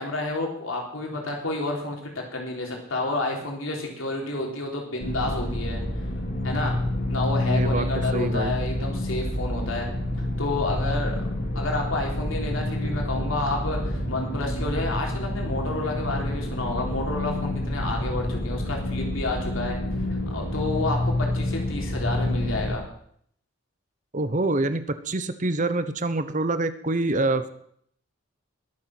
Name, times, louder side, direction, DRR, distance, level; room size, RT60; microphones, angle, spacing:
voice 1, 0.0-5.8 6.4-6.7 7.1-9.9 10.4-11.2 11.5-19.8 20.3-22.8, left 2 dB, 80° left, 1 dB, 3.4 m, -30 dB
sound 1, 5.0-22.7, left 1 dB, 50° left, 2.4 m, -28 dB
voice 2, 7.4-7.8 8.1-8.5 24.1-27.5, right 2 dB, 35° right, 11 dB, 0.9 m, -26 dB
21.0 x 7.2 x 6.0 m, 0.67 s
head